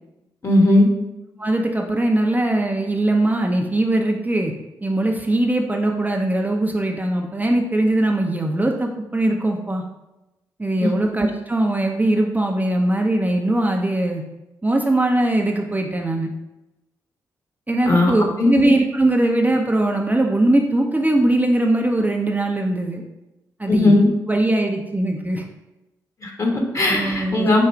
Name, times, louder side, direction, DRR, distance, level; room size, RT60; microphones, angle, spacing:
voice 1, 0.4-0.9 10.8-11.1 17.9-18.1 18.4-18.7 23.7-24.1 26.2-27.6, left 2 dB, 35° left, 1 dB, 1.3 m, -17 dB
voice 2, 1.4-4.5 4.8-9.8 10.6-14.2 14.6-16.3 17.7-23.0 23.6-24.0 24.3-25.4 26.9-27.5, right 1 dB, 20° right, 1 dB, 0.6 m, -20 dB
5.0 x 2.3 x 4.5 m, 0.96 s
hypercardioid pair, 40°, 9 cm